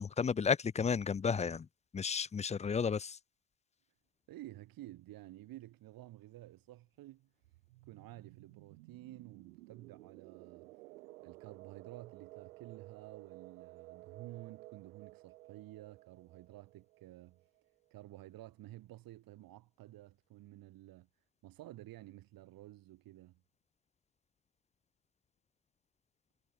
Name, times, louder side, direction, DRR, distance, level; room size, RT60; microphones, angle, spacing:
voice 1, 0.0-1.7 1.9-3.2, left 6 dB, 15° left, 0.7 m, -32 dB
voice 2, 4.3-7.3 7.9-10.7 11.2-17.4 17.9-21.1 21.4-23.4, right 16 dB, 50° right, 5.5 m, -52 dB
sound 1, 7.4-17.9, right 20 dB, 75° right, 2.0 m, -55 dB
hypercardioid pair, 95°, 43 cm